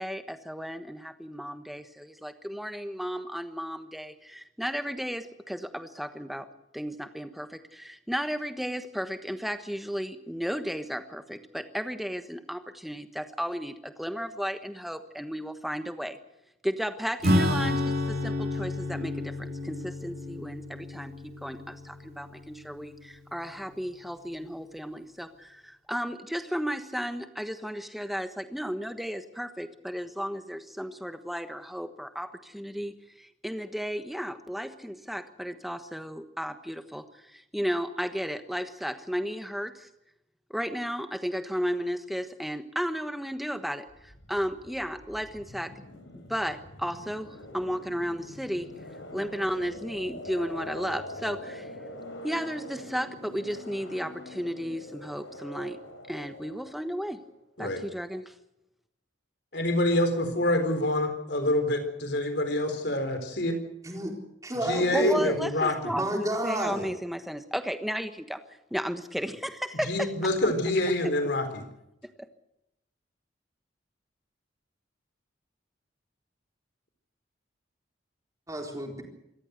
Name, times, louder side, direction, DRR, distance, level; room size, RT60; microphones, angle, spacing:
voice 1, 0.0-6.5 6.7-16.2 16.6-39.9 40.5-45.7 46.1-48.7 49.1-51.7 52.2-55.8 56.1-57.2 57.6-58.3 64.9-68.4 68.7-70.1, equal, ahead, 8 dB, 1.2 m, -34 dB
Acoustic guitar / Strum, 17.2-23.2, left 1 dB, 55° right, 2.8 m, -30 dB
sound 1, 43.9-57.3, left 1 dB, 80° left, 5.0 m, -44 dB
voice 2, 59.5-63.6 64.6-65.9 69.8-71.6, left 1 dB, 60° left, 7 dB, 4.1 m, -26 dB
voice 3, 63.8-64.2 64.4-65.4 65.8-66.9 78.5-79.0, right 1 dB, 20° right, 1 dB, 4.0 m, -31 dB
26.0 x 14.5 x 8.1 m, 0.85 s
head